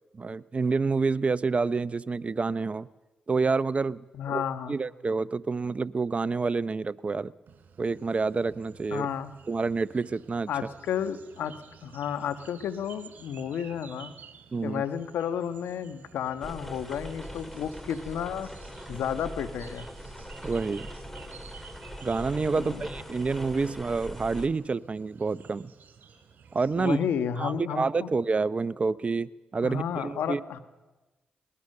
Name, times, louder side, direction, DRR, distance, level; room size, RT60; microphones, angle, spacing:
voice 1, 0.1-2.9 3.3-4.4 4.7-7.3 7.8-9.1 9.5-10.5 14.5-14.8 20.4-20.9 22.0-25.7 26.5-27.0 27.4-30.6, right 4 dB, 40° right, 17 dB, 0.7 m, -28 dB
voice 2, 4.1-4.8 8.9-9.3 10.5-11.5 11.8-14.1 14.6-18.5 18.9-19.9 22.5-22.8 26.8-28.1 29.6-30.6, left 8 dB, 80° left, 10 dB, 1.3 m, -32 dB
sound 1, 7.5-27.0, right 7 dB, 65° right, 3.0 m, -53 dB
sound 2, 16.4-24.5, equal, 5° left, 3.8 m, -41 dB
21.0 x 20.5 x 6.7 m, 1.2 s
supercardioid pair, 50°, 3 cm